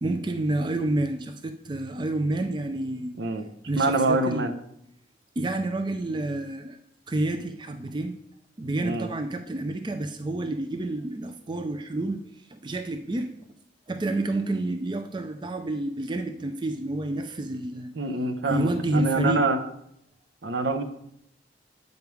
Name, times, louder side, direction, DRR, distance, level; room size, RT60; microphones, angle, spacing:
voice 1, 0.0-3.1 3.7-4.5 5.4-6.8 7.1-8.2 8.6-12.2 12.5-13.3 13.9-17.9 18.5-19.5, right 2 dB, 25° right, 8 dB, 0.4 m, -29 dB
voice 2, 3.8-4.5 8.8-9.1 18.0-19.6 20.4-20.8, right 2 dB, 75° right, 8 dB, 0.7 m, -25 dB
8.1 x 5.2 x 4.6 m, 0.76 s
head